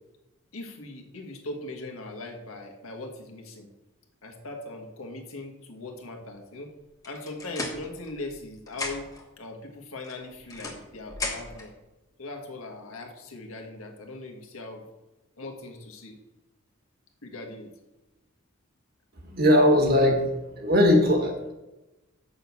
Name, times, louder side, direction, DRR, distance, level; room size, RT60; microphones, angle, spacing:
voice 1, 0.5-3.7 4.2-6.7 7.0-9.1 9.4-11.7 12.2-14.8 15.4-16.1 17.2-17.7, left 2 dB, 85° left, 2 dB, 1.6 m, -40 dB
sound 1, 7.0-8.4 8.7-9.3 10.0-11.7, left 3 dB, 15° left, 1.3 m, -36 dB
voice 2, 19.2-20.3 20.6-21.5, left 1 dB, 45° right, 3 dB, 1.6 m, -20 dB
6.8 x 6.2 x 7.0 m, 1.0 s
head